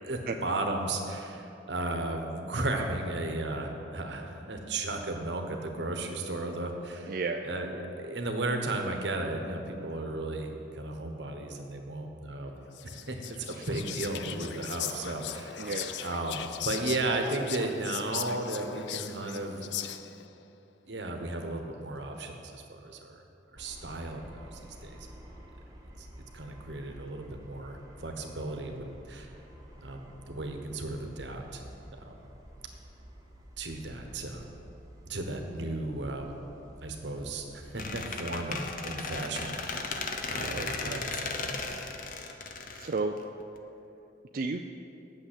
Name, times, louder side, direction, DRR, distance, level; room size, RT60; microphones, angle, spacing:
voice 1, 0.0-7.2 7.4-15.7 16.0-19.6 20.9-23.2 23.5-25.1 26.0-26.1 26.3-29.3 29.8-31.6 31.9-32.2 33.6-34.5 35.1-36.4 36.8-40.0 40.3-41.7, right 2 dB, 85° right, 4 dB, 1.2 m, -35 dB
voice 2, 7.1-7.5 13.6-13.7 15.6-15.9 40.4-41.1 42.7-43.2 44.3-44.6, right 3 dB, 50° right, 4 dB, 0.4 m, -33 dB
Whispering, 12.7-20.3, left 11 dB, 80° left, 0.4 m, -39 dB
sound 1, 23.6-42.0, equal, 20° right, 1.3 m, -51 dB
Squeak, 37.8-43.6, left 4 dB, 50° left, 0.8 m, -36 dB
9.0 x 6.8 x 8.3 m, 2.8 s
head